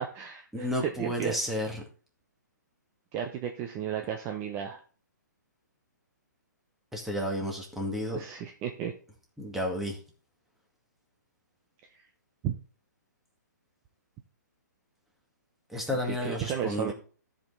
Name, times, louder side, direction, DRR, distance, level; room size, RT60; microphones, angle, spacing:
voice 1, 0.0-1.3 3.1-4.8 8.1-8.9 12.4-12.5 16.1-16.9, right 9 dB, 25° right, 4 dB, 1.0 m, -33 dB
voice 2, 0.5-1.8 6.9-8.2 9.4-10.0 15.7-16.9, left 1 dB, ahead, 0 dB, 2.1 m, -32 dB
13.5 x 5.3 x 4.1 m, 0.39 s
figure-of-eight pair, 125°, 10 cm